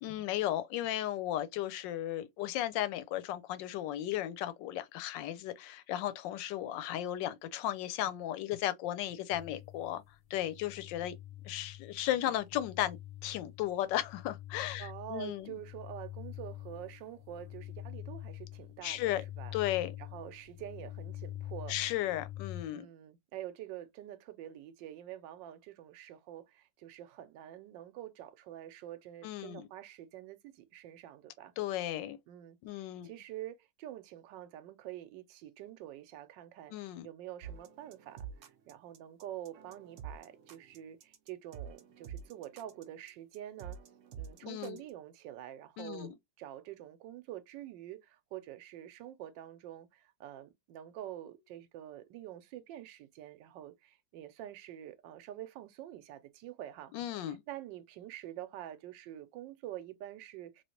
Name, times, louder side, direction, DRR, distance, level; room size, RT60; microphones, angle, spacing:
voice 1, 0.0-10.0 10.3-11.2 11.4-15.6 18.8-19.2 19.5-19.9 21.7-22.9 29.2-29.7 31.6-32.2 32.6-33.1 36.7-37.1 44.4-44.8 45.8-46.1 56.9-57.4, left 13 dB, 85° left, 1.3 m, -35 dB
sound 1, 9.3-22.6, left 14 dB, 40° left, 0.5 m, -46 dB
voice 2, 14.8-19.5 20.0-21.8 22.7-31.5 32.3-38.3 38.7-43.8 44.1-56.9 57.3-60.6, right 12 dB, 85° right, 1.3 m, -47 dB
sound 2, 37.4-44.9, right 8 dB, 65° right, 0.8 m, -48 dB
3.1 x 2.8 x 2.8 m
omnidirectional pair, 1.9 m